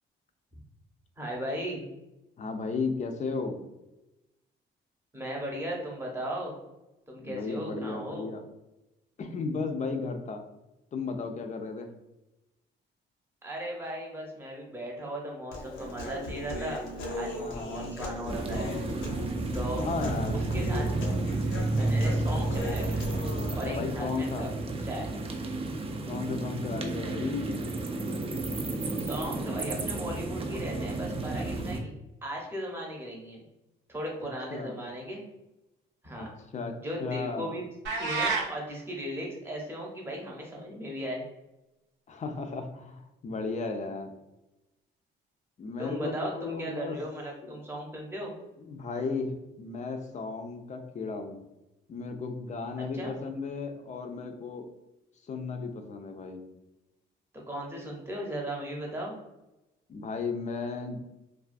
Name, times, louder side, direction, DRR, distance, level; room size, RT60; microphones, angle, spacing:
voice 1, 1.2-1.8 5.1-6.5 7.1-8.3 13.4-16.9 17.1-18.7 19.5-19.8 20.3-20.9 21.7-23.1 23.5-24.5 24.8-25.1 29.0-31.9 32.2-33.4 33.9-35.2 36.0-36.3 36.8-37.6 37.9-41.2 45.8-48.3 52.8-53.2 57.5-59.1, right 1 dB, 10° right, -1 dB, 0.8 m, -37 dB
voice 2, 2.4-3.6 7.2-8.4 9.2-10.4 10.9-11.9 17.4-17.9 19.8-21.2 23.5-24.5 26.1-27.6 34.5-34.8 36.2-36.3 36.5-36.7 37.0-37.5 42.1-44.1 45.6-47.0 47.4-47.6 48.6-51.4 51.9-54.7 55.3-56.4 59.9-61.0, left 4 dB, 35° left, 5 dB, 0.4 m, -35 dB
Human voice, 15.5-23.5, left 1 dB, 80° left, 0.6 m, -38 dB
sound 1, 18.3-31.8, right 2 dB, 30° right, 0.4 m, -31 dB
sound 2, 37.8-38.5, right 4 dB, 70° right, 0.7 m, -28 dB
2.3 x 2.3 x 2.5 m, 0.95 s
cardioid pair, 90°, 20 cm